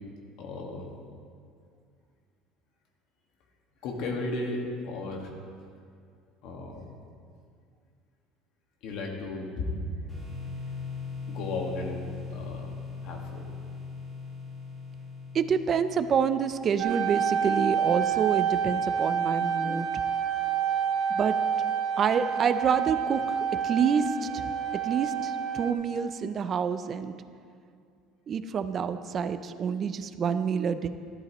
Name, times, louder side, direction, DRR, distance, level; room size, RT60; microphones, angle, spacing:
voice 1, 0.4-0.9 3.8-5.3 6.4-6.9 8.8-9.8 11.3-12.7 13.0-13.5, left 2 dB, 55° left, 1 dB, 1.6 m, -34 dB
sound 1, 10.1-16.9, left 4 dB, 10° left, 2.2 m, -40 dB
voice 2, 15.3-19.9 21.1-21.3 22.0-24.5 24.8-27.1 28.3-30.9, right 6 dB, 25° right, 11 dB, 0.4 m, -27 dB
sound 2, 16.8-25.7, right 7 dB, 55° right, 0.8 m, -28 dB
13.0 x 12.0 x 3.0 m, 2.2 s
cardioid pair, 175°, 0 cm